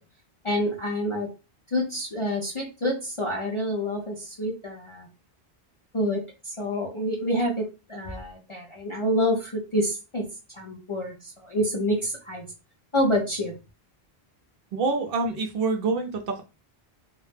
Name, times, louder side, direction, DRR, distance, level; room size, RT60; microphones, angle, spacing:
voice 1, 0.4-1.3 1.7-5.1 5.9-10.2 10.5-12.4 12.9-13.5, equal, 45° left, -1 dB, 0.4 m, -27 dB
voice 2, 14.7-16.4, right 3 dB, 65° right, 4 dB, 0.7 m, -26 dB
2.2 x 2.0 x 3.2 m, 0.29 s
omnidirectional pair, 1.1 m